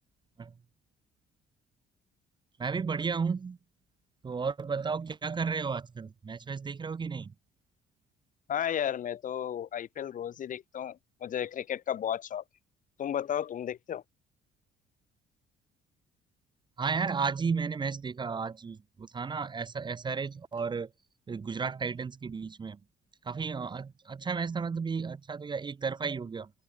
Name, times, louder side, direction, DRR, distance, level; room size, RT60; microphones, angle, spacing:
voice 1, 2.6-3.6 4.2-7.3 16.8-20.9 21.3-22.8 23.2-26.5, right 5 dB, 25° right, 1.1 m, -33 dB
voice 2, 8.5-12.4 13.0-14.0, left 9 dB, 50° left, 2.3 m, -33 dB
open air
cardioid pair, 110°, 17 cm